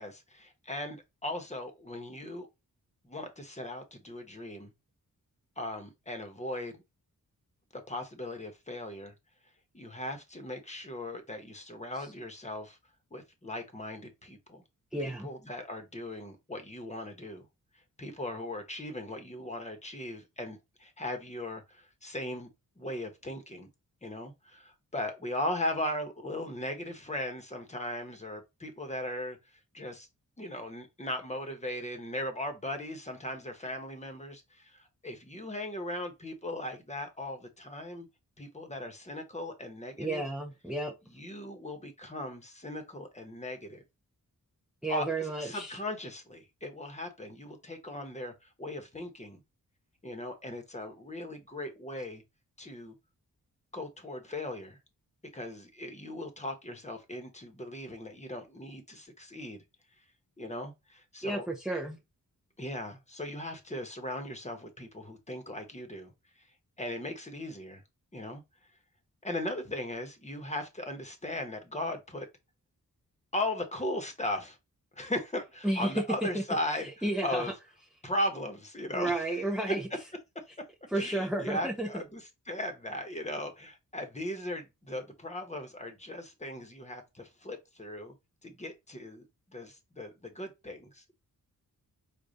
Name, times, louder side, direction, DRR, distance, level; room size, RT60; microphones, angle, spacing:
voice 1, 0.0-2.5 3.0-4.7 5.6-6.8 7.7-9.1 9.7-12.8 13.1-14.6 15.0-17.5 18.0-22.5 22.8-23.7 24.0-29.4 29.7-30.1 30.4-38.1 38.4-40.2 41.1-43.8 44.9-49.4 50.0-52.2 52.6-52.9 53.7-54.8 55.3-59.6 60.4-61.5 62.6-66.1 66.8-67.8 68.1-68.4 69.2-72.3 73.3-74.6 74.9-77.5 78.0-79.8 80.9-88.1 88.4-91.2, left 1 dB, 20° left, 1.0 m, -38 dB
voice 2, 14.9-15.3 40.0-40.9 44.8-45.8 61.2-62.0 75.6-76.0 76.8-77.5 78.9-79.9 80.9-82.0, right 1 dB, ahead, 0.5 m, -32 dB
5.0 x 2.4 x 4.0 m
wide cardioid pair, 100°, 35 cm